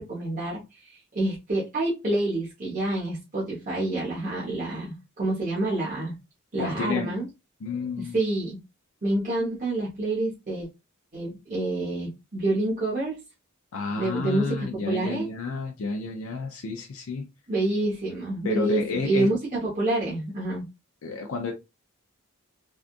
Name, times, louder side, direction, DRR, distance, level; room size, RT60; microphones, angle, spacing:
voice 1, 0.0-6.1 6.5-7.2 8.0-8.6 9.0-10.7 11.1-13.2 14.0-15.3 17.5-20.6, right 2 dB, 40° right, 1.2 m, -28 dB
voice 2, 6.6-7.1 7.6-8.2 13.7-17.3 18.4-19.3 21.0-21.5, left 4 dB, 75° left, 0.5 m, -31 dB
3.5 x 2.4 x 2.5 m
head